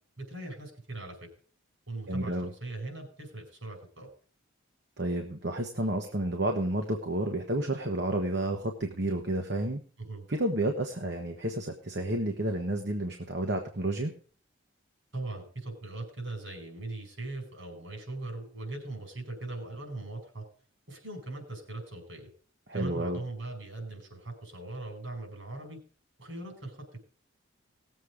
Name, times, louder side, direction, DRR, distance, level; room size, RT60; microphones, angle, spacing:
voice 1, 0.2-1.3 1.9-4.1 10.0-10.3 15.1-20.4 20.9-22.3 22.7-25.8 26.2-26.8, right 2 dB, 70° right, 4 dB, 5.0 m, -40 dB
voice 2, 2.1-2.5 5.0-9.8 10.3-14.1 22.7-23.2, right 1 dB, 55° right, 3 dB, 1.3 m, -30 dB
18.5 x 7.8 x 5.0 m, 0.42 s
head